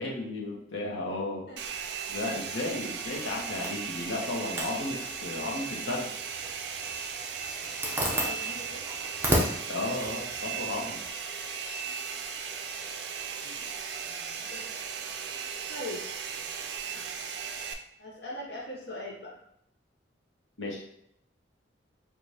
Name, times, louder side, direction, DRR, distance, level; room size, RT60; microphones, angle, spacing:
voice 1, 0.0-1.5 2.1-6.1 9.7-11.0 20.6-20.9, left 2 dB, 85° left, -2 dB, 0.9 m, -34 dB
Domestic sounds home sounds, 1.6-17.7, right 6 dB, 60° right, 0.4 m, -37 dB
Zipper (clothing), 2.9-11.1, right 1 dB, 10° right, 0.5 m, -35 dB
voice 2, 7.8-8.8 12.8-13.0 13.5-13.7 14.3-14.7 15.7-16.1 16.9-17.0 18.0-19.4, left 1 dB, 55° left, -5 dB, 0.7 m, -41 dB
4.8 x 2.4 x 2.7 m, 0.76 s
head